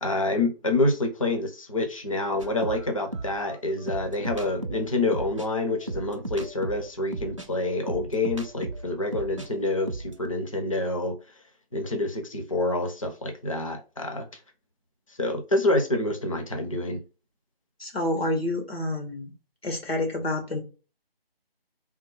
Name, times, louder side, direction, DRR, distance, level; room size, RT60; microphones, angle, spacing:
voice 1, 0.0-11.2 11.7-14.3 15.2-17.0, left 2 dB, 35° left, 0.7 m, -27 dB
sound 1, 2.4-9.5 9.8-10.3, right 2 dB, 35° right, 0.5 m, -36 dB
voice 2, 17.8-19.3 19.6-20.6, left 1 dB, 80° left, 2.3 m, -28 dB
3.6 x 2.7 x 4.6 m
figure-of-eight pair, 175°, 30 cm